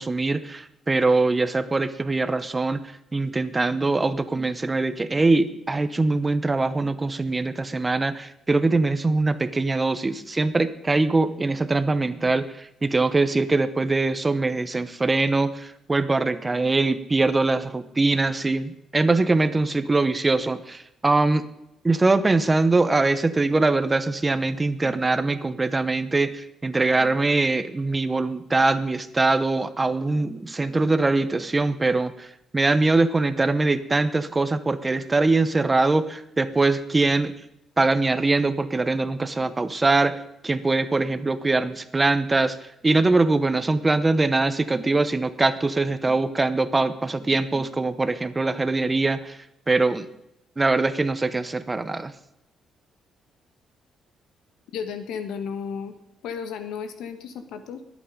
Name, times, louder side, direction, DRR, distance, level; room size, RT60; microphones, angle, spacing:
voice 1, 0.0-2.8 3.1-21.4 21.8-32.3 32.5-37.3 37.8-40.2 40.4-42.6 42.8-49.4 49.7-50.1 50.6-52.1, right 3 dB, 20° right, 12 dB, 1.0 m, -22 dB
voice 2, 54.7-55.9 56.2-57.8, left 6 dB, 85° left, 9 dB, 1.6 m, -33 dB
20.5 x 8.6 x 5.2 m, 0.81 s
cardioid pair, 90°, 0 cm